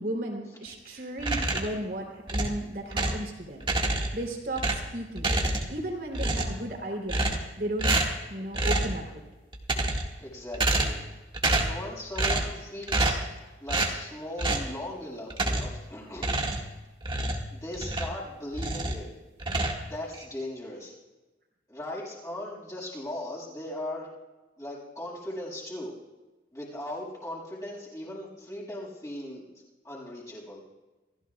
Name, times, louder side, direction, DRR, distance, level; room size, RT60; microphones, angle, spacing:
voice 1, 0.0-3.6 4.1-5.3 5.7-7.3 7.6-8.0 8.3-9.0, right 1 dB, 55° right, 1 dB, 3.5 m, -34 dB
sound 1, 1.2-1.8 2.3-3.3 3.6-4.2 4.6-5.8 6.1-6.7 7.1-7.5 7.8-8.2 8.5-9.0 9.5-10.2 10.5-11.1 11.3-11.8 12.2-12.6 12.9-13.3 13.7-14.0 14.4-14.7 15.3-15.8 16.2-18.2 18.5-19.0 19.4-20.2, right 2 dB, 30° right, 1.9 m, -28 dB
voice 2, 10.2-11.0 11.6-13.2 13.6-16.4 17.5-19.0 19.8-20.9 21.7-24.1 24.6-25.9 26.5-29.5 29.8-30.6, left 1 dB, 20° left, -7 dB, 6.7 m, -38 dB
27.5 x 15.5 x 2.4 m, 1.1 s
head